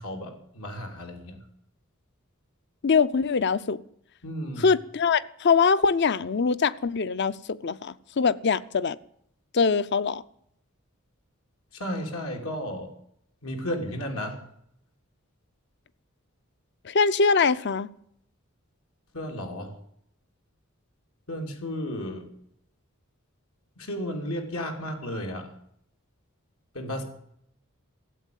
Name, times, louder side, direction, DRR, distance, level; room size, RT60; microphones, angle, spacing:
voice 1, 0.0-1.4 4.2-4.7 11.7-12.9 13.4-14.4 19.1-19.8 21.3-22.3 23.8-25.5 26.7-27.0, equal, 85° left, 3 dB, 2.9 m, -33 dB
voice 2, 2.8-3.8 4.6-9.0 9.5-10.2 16.8-17.9, left 5 dB, 55° left, 17 dB, 0.6 m, -23 dB
15.0 x 8.1 x 9.3 m, 0.70 s
head